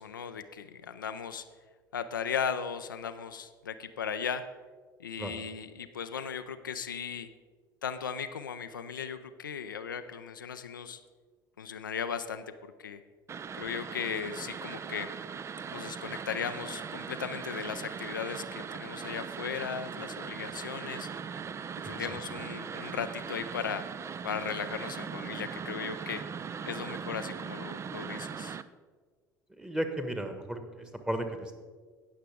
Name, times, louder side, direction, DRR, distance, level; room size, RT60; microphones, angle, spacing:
voice 1, 0.0-1.4 1.9-4.4 5.0-7.3 7.8-11.0 11.6-12.4 12.8-13.0 13.5-15.1 15.7-21.1 21.8-23.8 24.2-26.2 26.7-28.6, left 7 dB, 80° left, 9 dB, 0.4 m, -37 dB
sound 1, 13.3-28.6, right 6 dB, 25° right, 0.4 m, -40 dB
voice 2, 29.6-31.5, right 1 dB, 5° right, 7 dB, 1.3 m, -34 dB
18.0 x 6.6 x 3.4 m, 1.5 s
figure-of-eight pair, 60°, 11 cm